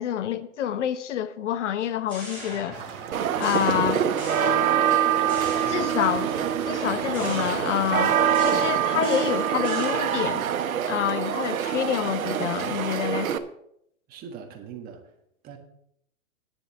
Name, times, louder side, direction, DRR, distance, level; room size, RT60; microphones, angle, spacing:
voice 1, 0.0-2.8 3.4-4.0 5.7-6.3 6.7-10.4 10.9-13.3, left 10 dB, 60° left, 0.8 m, -27 dB
sound 1, 1.8-3.1 3.4-5.0 5.3-6.3 7.1-10.3, equal, 15° left, 4.3 m, -40 dB
sound 2, 2.7-8.7, right 7 dB, 55° right, 2.3 m, -37 dB
sound 3, 3.1-13.4, right 9 dB, 85° right, 1.1 m, -25 dB
voice 2, 14.1-15.2 15.4-15.6, right 7 dB, 20° right, 1.5 m, -41 dB
10.0 x 6.7 x 6.9 m
hypercardioid pair, 150°, 40 cm